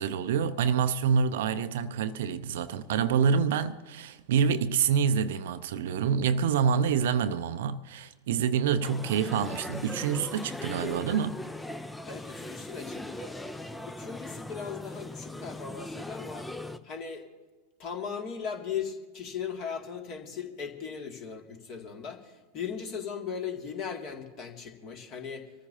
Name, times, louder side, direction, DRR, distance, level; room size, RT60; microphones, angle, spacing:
voice 1, 0.0-11.4, right 7 dB, 55° right, 0.6 m, -27 dB
sound 1, 8.8-16.8, left 1 dB, 5° left, 0.6 m, -39 dB
voice 2, 12.0-13.4 13.9-16.5 16.8-17.2 17.8-25.5, left 6 dB, 40° left, 2.2 m, -38 dB
25.0 x 14.0 x 2.8 m
figure-of-eight pair, 90°, 0 cm